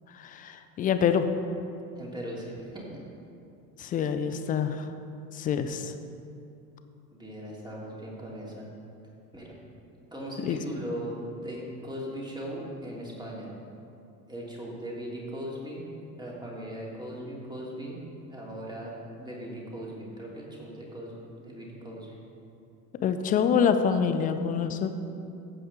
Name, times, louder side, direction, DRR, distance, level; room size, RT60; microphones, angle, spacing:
voice 1, 0.1-1.3 3.8-4.9 5.3-5.9 10.4-10.6 23.0-24.9, left 7 dB, 20° left, 9 dB, 0.4 m, -26 dB
voice 2, 1.9-2.8 7.1-8.7 9.3-9.5 10.1-13.5 14.3-15.9 16.2-18.9 19.2-22.2, equal, 10° right, -4 dB, 2.9 m, -39 dB
15.5 x 8.6 x 3.7 m, 2.7 s
figure-of-eight pair, 75°, 50 cm